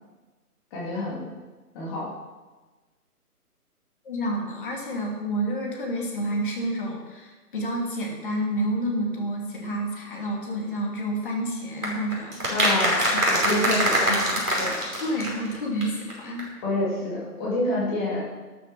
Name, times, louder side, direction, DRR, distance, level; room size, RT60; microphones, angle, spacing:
voice 1, 0.7-1.2 1.7-2.1 12.5-14.2 14.6-14.8 16.6-18.2, left 2 dB, 15° left, -6 dB, 3.0 m, -28 dB
voice 2, 4.0-12.4 13.4-14.5 14.7-16.5, right 1 dB, 30° left, 0 dB, 2.7 m, -29 dB
sound 1, 11.8-15.6 15.8-16.1 16.4-16.5, equal, 70° right, 5.3 m, -24 dB
12.5 x 9.6 x 6.5 m, 1.3 s
figure-of-eight pair, 150°, 47 cm